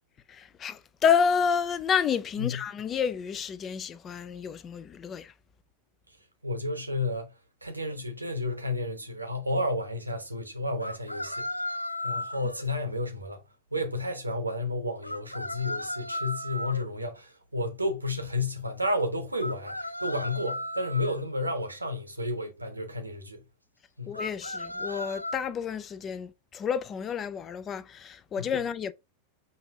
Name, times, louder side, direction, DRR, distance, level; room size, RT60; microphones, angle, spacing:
voice 1, 0.3-5.3 24.1-28.9, left 7 dB, 25° left, 0.4 m, -29 dB
voice 2, 6.4-7.3 7.6-11.5 12.0-13.4 13.7-23.4 24.0-24.2 28.4-28.5, left 1 dB, 85° right, 1.0 m, -31 dB
sound 1, 7.9-8.0 10.8-12.6 15.0-16.8 19.4-21.2 24.1-25.4, left 1 dB, 85° left, 0.3 m, -35 dB
5.5 x 2.6 x 3.4 m
figure-of-eight pair, 90°, 0 cm